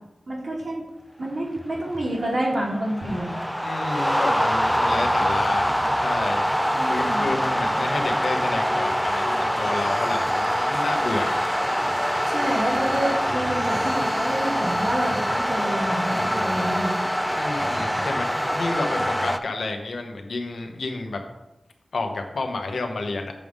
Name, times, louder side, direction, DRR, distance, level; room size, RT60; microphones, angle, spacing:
voice 1, 0.3-0.8 1.2-3.4 6.7-7.2 12.3-17.0, right 1 dB, 65° right, -5 dB, 2.4 m, -28 dB
sound 1, 1.4-19.4, equal, ahead, 0.4 m, -24 dB
voice 2, 3.6-6.5 6.9-11.3 17.4-21.2 21.9-23.3, left 3 dB, 85° left, 4 dB, 1.0 m, -30 dB
7.6 x 3.6 x 6.5 m, 0.94 s
wide cardioid pair, 60°, 0 cm